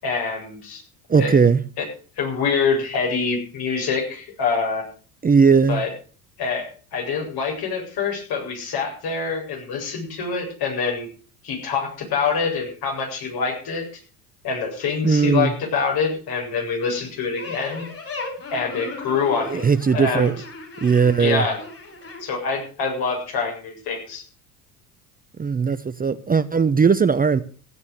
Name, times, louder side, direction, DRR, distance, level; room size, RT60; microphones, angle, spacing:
voice 1, 0.0-0.8 1.2-1.3 1.8-1.9 2.1-4.9 5.7-5.9 6.4-11.1 11.4-13.9 14.4-17.8 18.5-19.7 19.9-20.3 21.2-21.6 22.2-24.2, left 5 dB, 55° left, 7.8 m, -25 dB
voice 2, 1.1-1.6 5.2-5.8 15.0-15.5 19.5-20.3 20.8-21.5 25.4-27.4, right 5 dB, 20° right, 0.8 m, -18 dB
sound 1, 17.3-22.2, left 3 dB, 30° left, 6.7 m, -36 dB
15.5 x 9.7 x 6.7 m
hypercardioid pair, 65°, 45 cm